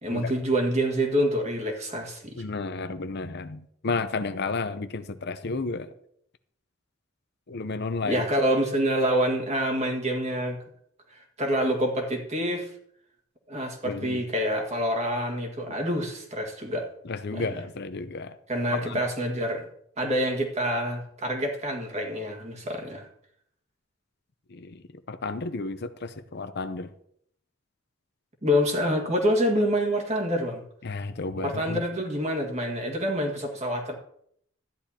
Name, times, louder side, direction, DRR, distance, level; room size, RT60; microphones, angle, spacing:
voice 1, 0.0-2.4 8.0-10.6 11.4-12.7 13.5-16.9 17.3-17.5 18.5-19.7 20.0-23.1 28.4-30.6 31.4-33.9, equal, 35° right, 2 dB, 1.8 m, -27 dB
voice 2, 2.4-5.9 7.5-8.2 13.8-14.2 15.7-15.8 17.0-18.3 18.7-19.0 24.5-24.8 25.1-26.9 30.8-31.8, left 3 dB, 55° left, 10 dB, 0.7 m, -32 dB
13.5 x 10.5 x 2.9 m, 0.70 s
head